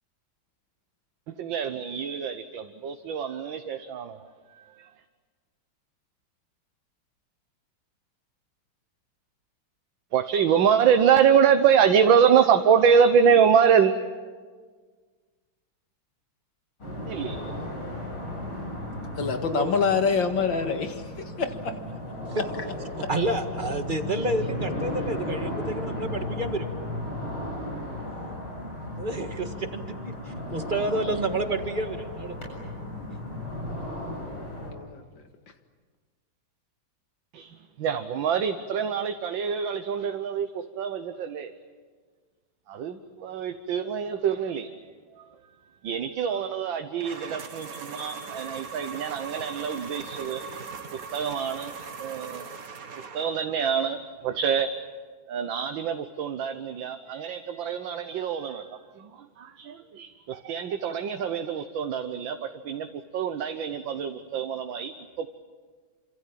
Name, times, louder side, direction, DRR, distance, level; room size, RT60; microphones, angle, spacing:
voice 1, 1.4-4.2 4.8-4.9 10.1-13.9 17.1-17.4 19.5-19.7 37.3-41.5 42.7-44.7 45.2-45.3 45.8-50.4 50.9-52.5 53.1-54.7 55.3-58.7 59.0-59.1 59.4-65.3, right 7 dB, 70° right, 7 dB, 1.8 m, -25 dB
sound 1, 16.8-34.7, left 1 dB, 90° left, 8.4 m, -35 dB
voice 2, 19.2-21.8 34.2-35.2, left 5 dB, 65° left, 6 dB, 2.6 m, -27 dB
voice 3, 23.1-26.7 29.0-32.4, right 2 dB, 25° right, 6 dB, 1.8 m, -29 dB
sound 2, 47.0-53.5, right 5 dB, 45° right, 1.8 m, -39 dB
28.0 x 26.0 x 7.5 m, 1.5 s
omnidirectional pair, 2.2 m